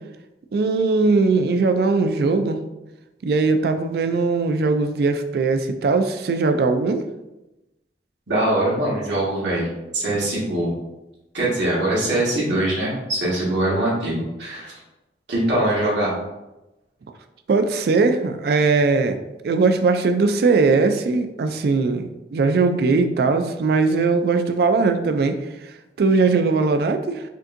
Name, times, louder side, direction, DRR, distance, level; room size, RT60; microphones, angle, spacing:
voice 1, 0.5-2.6 3.2-7.0 17.5-19.2 19.4-25.4 26.0-27.2, right 4 dB, 60° right, 8 dB, 0.3 m, -20 dB
voice 2, 8.3-9.7 9.9-10.7 11.3-14.8 15.3-16.1, right 1 dB, 85° right, -6 dB, 1.5 m, -22 dB
5.1 x 2.6 x 2.5 m, 0.99 s
head